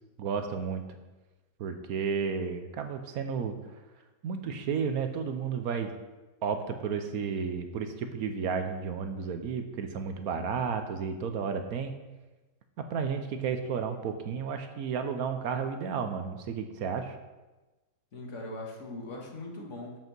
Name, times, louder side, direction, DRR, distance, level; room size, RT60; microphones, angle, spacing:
voice 1, 0.2-0.8 1.6-3.5 4.2-5.9 6.4-11.9 12.8-17.2, right 6 dB, 70° right, 7 dB, 1.1 m, -32 dB
voice 2, 18.1-20.0, left 2 dB, 50° left, 0 dB, 1.6 m, -40 dB
7.8 x 5.4 x 6.0 m, 1.2 s
omnidirectional pair, 1.7 m